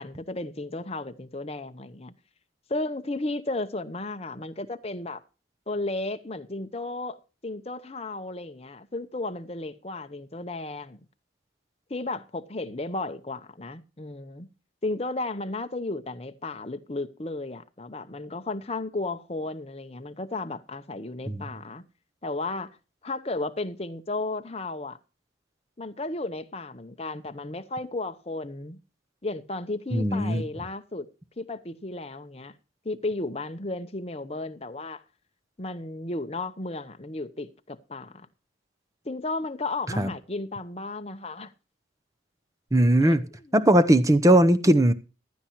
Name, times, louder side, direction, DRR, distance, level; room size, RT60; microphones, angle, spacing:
voice 1, 0.0-2.1 2.7-5.2 5.7-11.0 11.9-14.5 14.8-21.8 22.2-22.8 23.0-25.0 25.8-28.8 29.2-31.1 31.4-32.5 32.8-35.0 35.6-38.3 39.0-41.5 43.0-43.2, left 2 dB, 30° left, 0.8 m, -34 dB
voice 2, 29.9-30.4 40.0-40.1 42.7-43.3 43.5-44.9, right 1 dB, 15° right, 0.7 m, -19 dB
15.5 x 11.5 x 3.1 m
head